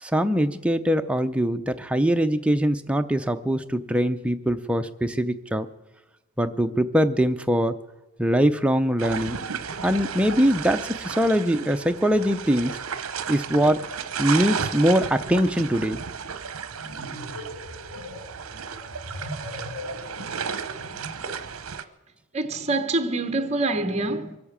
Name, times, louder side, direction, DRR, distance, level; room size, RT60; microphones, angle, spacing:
voice 1, 0.0-5.7 6.4-7.7 8.2-9.4 9.8-12.8 13.3-13.8 14.2-16.0, equal, 5° right, 0.6 m, -22 dB
sound 1, 9.0-21.8, right 6 dB, 65° right, 0.8 m, -33 dB
sound 2, 16.6-21.4, left 1 dB, 90° left, 5.5 m, -40 dB
voice 2, 22.3-24.4, right 2 dB, 30° right, 0.9 m, -25 dB
23.5 x 8.5 x 7.3 m
head